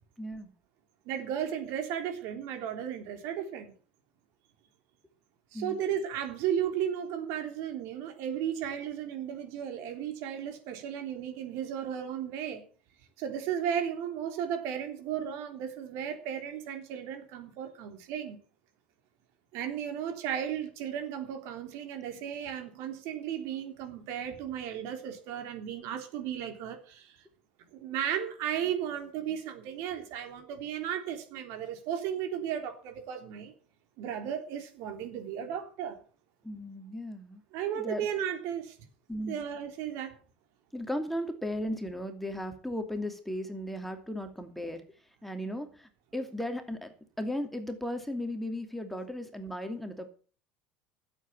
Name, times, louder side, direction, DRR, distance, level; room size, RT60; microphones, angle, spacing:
voice 1, 0.2-0.5 5.5-5.8 36.4-37.4 37.8-38.1 39.1-39.4 40.7-44.8 45.2-50.1, left 1 dB, 5° left, 6 dB, 2.6 m, -36 dB
voice 2, 1.1-3.7 5.5-12.6 13.2-18.4 19.5-27.2 27.7-33.5 34.0-36.0 37.5-38.8 39.3-40.2, right 9 dB, 60° right, 5 dB, 3.4 m, -35 dB
13.5 x 8.1 x 7.4 m, 0.40 s
hypercardioid pair, 70°, 5 cm